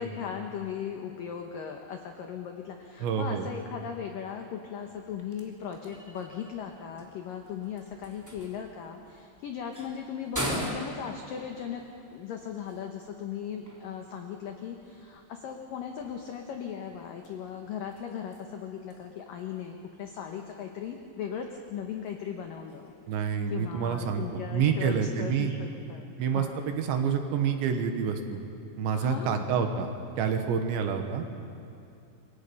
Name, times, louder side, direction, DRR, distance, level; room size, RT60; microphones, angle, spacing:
voice 1, 0.0-11.8 12.1-22.9 23.5-26.6 28.9-29.5, left 8 dB, 85° left, 4 dB, 1.9 m, -38 dB
voice 2, 3.0-3.5 23.1-25.5 26.2-28.4 28.8-29.9 30.2-31.2, right 7 dB, 70° right, 6 dB, 3.5 m, -28 dB
sound 1, 4.9-24.4, equal, 5° right, 1.3 m, -44 dB
27.0 x 23.0 x 5.4 m, 2.7 s
omnidirectional pair, 5.6 m